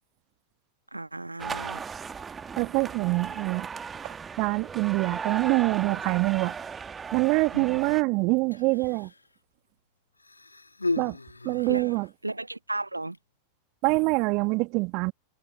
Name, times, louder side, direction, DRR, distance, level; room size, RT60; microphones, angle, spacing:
voice 1, 0.9-1.8 7.5-8.0 11.7-11.8 12.2-13.2, right 2 dB, 85° right, 1.3 m, -34 dB
sound 1, 1.4-8.0, right 6 dB, 20° right, 1.5 m, -37 dB
voice 2, 2.5-3.7 4.0-6.5 7.1-9.1 11.0-11.2 11.4-12.1 13.8-15.1, right 27 dB, 40° right, 1.7 m, -25 dB
Human voice, 8.4-9.3 10.2-12.1 13.0-13.2, left 3 dB, 80° left, 1.9 m, -35 dB
figure-of-eight pair, 90°, 0 cm